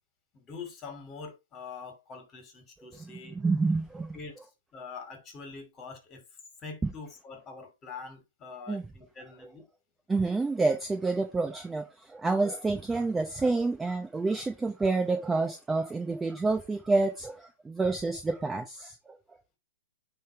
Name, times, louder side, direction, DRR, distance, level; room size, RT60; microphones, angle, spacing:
voice 1, 0.3-3.4 4.1-4.4 4.7-6.2 6.6-9.7, left 4 dB, 20° left, 2.7 m, -44 dB
voice 2, 3.3-4.2 6.8-6.9 8.7-8.8 10.1-19.1, right 3 dB, 10° right, 0.8 m, -28 dB
9.2 x 3.4 x 4.6 m
hypercardioid pair, 140°, 0 cm